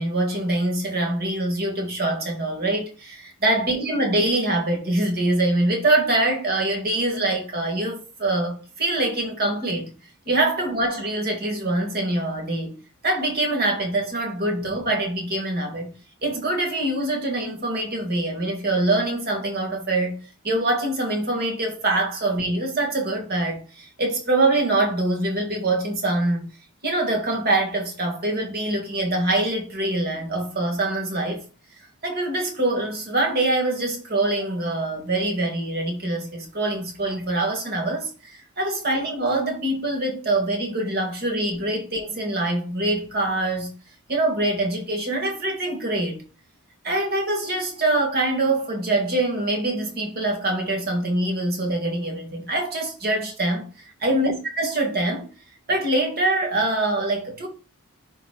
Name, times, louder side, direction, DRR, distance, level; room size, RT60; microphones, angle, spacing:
voice 1, 0.0-9.9 10.3-15.9 16.2-20.2 20.4-26.5 26.8-31.4 32.0-43.7 44.1-46.2 46.8-55.3 55.7-57.5, right 2 dB, 45° right, 1.9 m, -24 dB
11.0 x 4.1 x 2.3 m
head